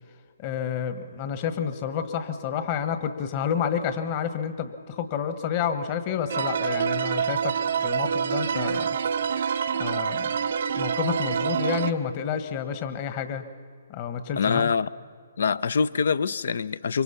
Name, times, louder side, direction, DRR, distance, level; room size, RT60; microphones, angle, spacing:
voice 1, 0.4-7.6 7.8-9.0 9.8-10.3 10.8-13.4 13.9-14.7, left 7 dB, 35° left, 10 dB, 1.5 m, -29 dB
sound 1, 6.3-11.9, right 7 dB, 60° right, 0.7 m, -26 dB
voice 2, 14.4-14.9 15.4-17.0, left 5 dB, 65° left, 17 dB, 0.6 m, -24 dB
25.0 x 24.0 x 5.7 m, 2.1 s
figure-of-eight pair, 130°, 0 cm